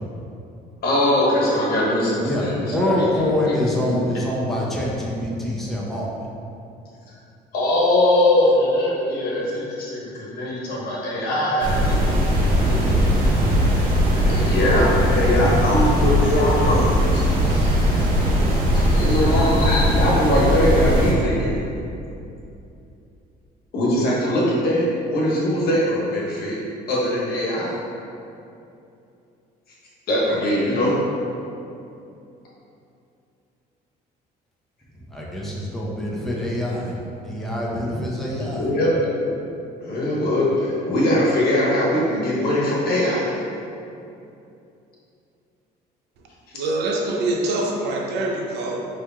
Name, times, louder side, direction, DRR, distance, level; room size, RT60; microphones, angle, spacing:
voice 1, 0.8-4.0 7.1-7.2 7.5-11.9 12.5-13.0 14.2-18.0 18.7-21.6 23.7-26.6 26.9-27.8 30.1-31.0 38.5-39.2 39.8-43.5 46.5-46.6, left 1 dB, 65° left, -6 dB, 1.2 m, -22 dB
voice 2, 2.2-6.1 35.1-38.6, left 1 dB, ahead, -6 dB, 0.7 m, -25 dB
sound 1, 11.6-21.1, equal, 60° right, 1.4 m, -19 dB
voice 3, 46.5-48.8, right 2 dB, 80° right, -1 dB, 0.6 m, -24 dB
5.2 x 3.1 x 2.3 m, 2.7 s
cardioid pair, 110°, 17 cm